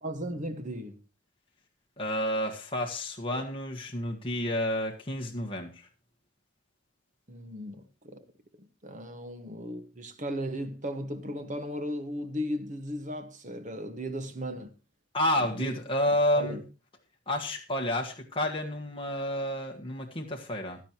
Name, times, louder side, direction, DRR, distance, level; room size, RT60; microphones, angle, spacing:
voice 1, 0.0-1.0 7.3-8.2 8.6-14.7 15.6-15.8 16.3-16.6, equal, 40° right, 1.5 m, -36 dB
voice 2, 2.0-5.9 15.1-16.6 17.3-20.8, left 1 dB, 25° left, 1.5 m, -30 dB
16.0 x 11.5 x 3.0 m
head